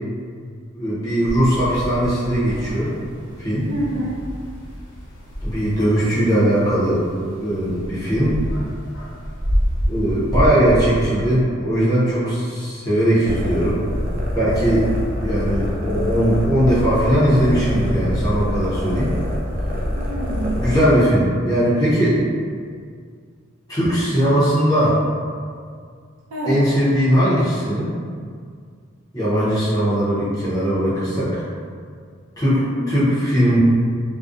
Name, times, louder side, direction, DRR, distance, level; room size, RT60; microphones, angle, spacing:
voice 1, 0.7-2.9 3.4-3.7 5.4-7.0 7.4-8.4 9.9-13.8 14.3-14.9 15.2-19.1 20.6-22.2 23.7-25.0 26.5-27.9 29.1-31.4 32.4-33.6, equal, 20° left, -10 dB, 0.6 m, -19 dB
sound 1, 1.3-11.4, equal, 65° left, 0.6 m, -28 dB
voice 2, 3.7-4.2 19.9-20.6 26.3-26.6 32.5-33.1, right 1 dB, 90° right, -5 dB, 0.6 m, -27 dB
sound 2, 13.2-20.8, equal, 40° right, 0.4 m, -25 dB
2.4 x 2.1 x 2.5 m, 2.1 s
head